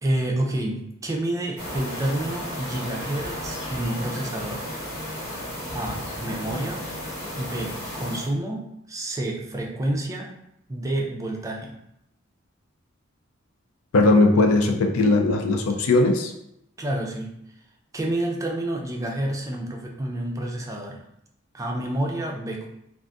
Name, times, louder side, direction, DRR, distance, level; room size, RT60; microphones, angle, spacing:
voice 1, 0.0-4.6 5.7-6.8 7.4-10.3 10.7-11.7 16.8-17.3 17.9-21.0 21.5-22.7, right 1 dB, 15° right, 0 dB, 0.4 m, -29 dB
sound 1, 1.6-8.3, equal, 40° left, 1.1 m, -33 dB
voice 2, 13.9-16.3, left 2 dB, 85° left, 3 dB, 0.5 m, -19 dB
2.5 x 2.4 x 3.4 m, 0.78 s
head